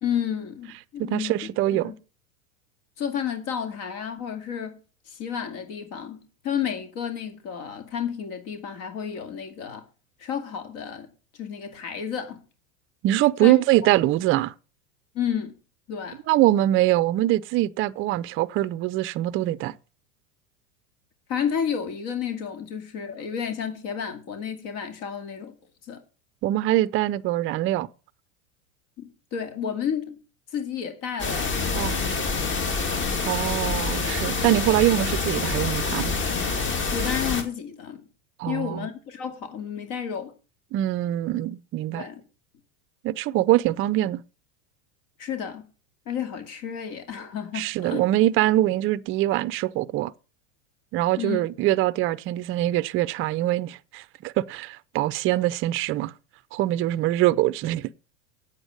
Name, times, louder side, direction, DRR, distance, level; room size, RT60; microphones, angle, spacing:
voice 1, 0.0-1.9 3.0-4.8 5.1-9.8 10.2-11.1 11.3-12.4 13.4-13.5 15.1-15.5 15.9-16.2 21.3-25.5 25.9-26.0 29.0-30.2 30.5-32.7 36.9-38.1 38.5-40.3 41.9-42.2 45.2-45.6 46.1-48.1 51.2-51.4, left 8 dB, 50° left, 2.3 m, -31 dB
voice 2, 1.0-1.9 13.0-14.5 16.3-19.7 26.4-27.9 31.8-32.0 33.2-36.1 38.4-38.9 40.7-42.0 43.0-44.2 47.5-50.1 50.9-56.1 56.5-57.9, right 15 dB, 30° right, 0.5 m, -23 dB
sound 1, 31.2-37.4, left 4 dB, 30° left, 2.5 m, -26 dB
8.9 x 8.0 x 6.2 m
hypercardioid pair, 110°, 40 cm